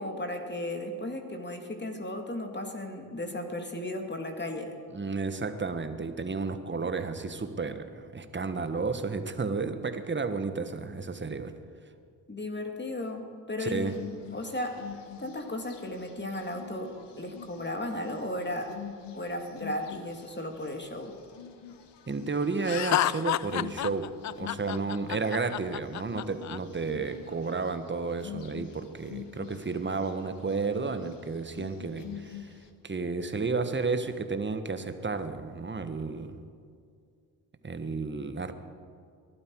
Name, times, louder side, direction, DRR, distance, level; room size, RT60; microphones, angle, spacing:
voice 1, 0.0-4.8 12.3-14.0 14.3-14.8 15.2-18.7 19.1-21.1, left 1 dB, 20° left, 4 dB, 2.3 m, -35 dB
voice 2, 4.9-11.5 13.6-13.9 22.1-24.1 24.4-32.4 32.8-36.4 37.6-38.5, right 4 dB, 20° right, 9 dB, 1.5 m, -32 dB
sound 1, 13.9-32.7, left 8 dB, 55° left, 1.5 m, -47 dB
Laughter, 22.6-26.6, left 12 dB, 40° left, 0.4 m, -30 dB
22.0 x 12.0 x 4.7 m, 2.2 s
hypercardioid pair, 45°, 49 cm